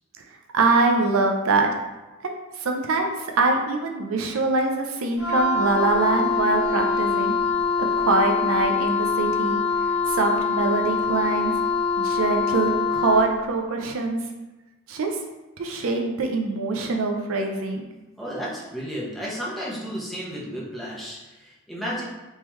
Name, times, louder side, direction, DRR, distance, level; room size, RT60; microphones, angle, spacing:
voice 1, 0.5-1.7 2.2-7.3 8.0-9.6 10.1-11.5 12.0-14.2 14.9-15.2 15.6-17.8, right 3 dB, 80° right, 2 dB, 0.5 m, -23 dB
Wind instrument woodwind instrument, 5.2-13.3, left 5 dB, 80° left, 1.0 m, -24 dB
voice 2, 18.2-22.1, equal, ahead, -6 dB, 0.7 m, -33 dB
3.6 x 3.1 x 3.0 m, 1.1 s
head